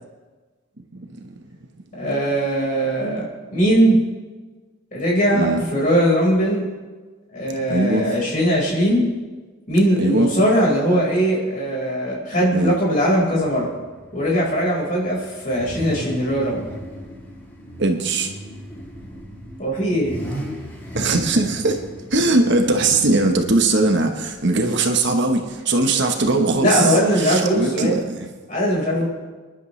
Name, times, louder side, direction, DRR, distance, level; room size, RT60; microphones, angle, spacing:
voice 1, 2.0-3.3 3.5-4.0 4.9-6.7 7.3-9.1 9.7-13.7 14.1-16.6 19.6-20.2 26.6-28.0 28.5-29.1, equal, 35° left, -4 dB, 4.8 m, -20 dB
voice 2, 5.3-5.6 7.7-8.0 10.0-10.3 12.5-12.7 17.8-18.3 20.9-21.8 22.1-28.3, right 2 dB, 50° right, 4 dB, 1.2 m, -20 dB
Car / Idling / Accelerating revving vroom, 13.4-25.5, equal, 10° left, 2.9 m, -37 dB
28.5 x 11.0 x 3.3 m, 1.3 s
head